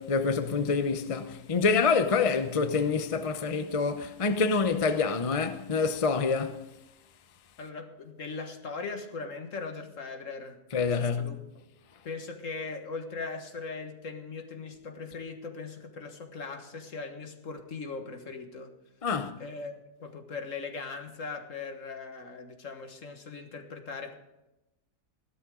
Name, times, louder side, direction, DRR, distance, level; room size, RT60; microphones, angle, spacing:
voice 1, 0.0-6.6 10.7-11.3 19.0-19.4, left 4 dB, 35° left, 0.6 m, -27 dB
voice 2, 7.6-10.6 11.0-11.6 12.0-18.7 19.4-24.1, left 4 dB, 55° left, 1.8 m, -39 dB
16.5 x 12.5 x 3.8 m
omnidirectional pair, 1.6 m